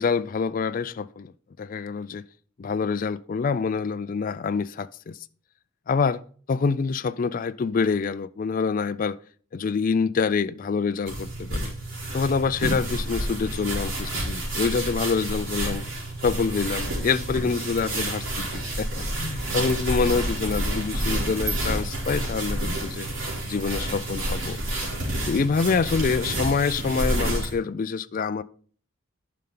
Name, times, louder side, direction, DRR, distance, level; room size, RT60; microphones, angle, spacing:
voice 1, 0.0-1.3 1.6-2.2 2.6-5.2 5.9-6.2 6.5-9.2 9.5-11.7 12.1-15.8 16.2-23.1 23.4-24.6 25.3-28.4, left 5 dB, 45° left, 0.4 m, -26 dB
sound 1, 11.1-27.5, right 1 dB, 70° right, 3.9 m, -29 dB
11.0 x 5.7 x 3.8 m
head